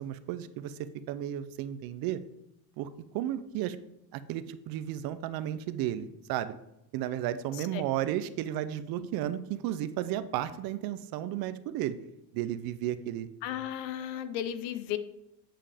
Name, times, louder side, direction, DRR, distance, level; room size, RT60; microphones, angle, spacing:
voice 1, 0.0-2.2 2.8-3.8 4.1-6.5 6.9-12.0 12.3-13.3, right 12 dB, 50° right, 13 dB, 0.5 m, -33 dB
voice 2, 7.5-7.8 9.0-9.1 13.4-15.0, left 10 dB, 85° left, 12 dB, 0.9 m, -35 dB
8.4 x 5.5 x 3.5 m, 0.85 s
cardioid pair, 140°, 48 cm